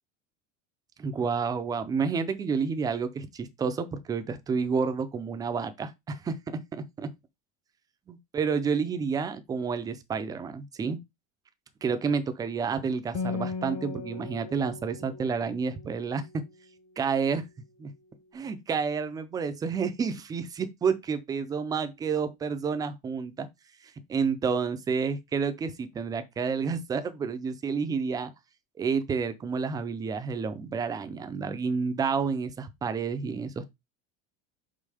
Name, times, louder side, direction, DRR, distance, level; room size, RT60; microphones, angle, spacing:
voice 1, 1.0-7.1 8.1-11.0 11.8-16.5 17.0-17.4 17.8-17.9 18.3-23.5 24.1-28.3 28.8-33.6, right 5 dB, 10° right, 0.4 m, -30 dB
Acoustic guitar, 13.1-16.9, left 4 dB, 40° left, 1.0 m, -38 dB
5.6 x 4.2 x 4.7 m
supercardioid pair, 160°, 38 cm